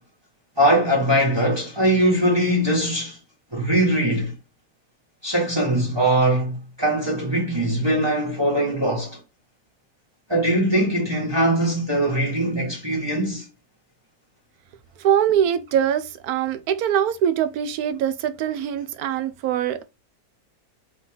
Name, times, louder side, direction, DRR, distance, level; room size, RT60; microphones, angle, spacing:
voice 1, 0.6-3.2 3.5-4.3 5.2-9.2 10.3-13.4, right 1 dB, 20° right, 1.3 m, -21 dB
voice 2, 15.0-19.8, right 9 dB, 80° right, 1.1 m, -23 dB
3.7 x 3.1 x 3.8 m
omnidirectional pair, 1.6 m